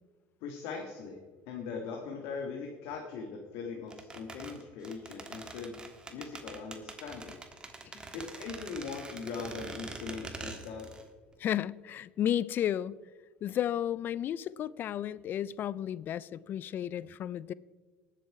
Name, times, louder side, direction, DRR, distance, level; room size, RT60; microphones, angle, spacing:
voice 1, 0.4-1.2 1.5-5.8 6.1-7.4 8.1-10.9, left 5 dB, 70° left, 1.6 m, -40 dB
sound 1, 3.9-11.1 11.3-11.4, right 3 dB, 20° right, 1.4 m, -44 dB
voice 2, 11.4-13.0 13.4-17.5, left 10 dB, 45° left, 0.4 m, -33 dB
19.0 x 7.5 x 4.7 m
supercardioid pair, 105°, 5 cm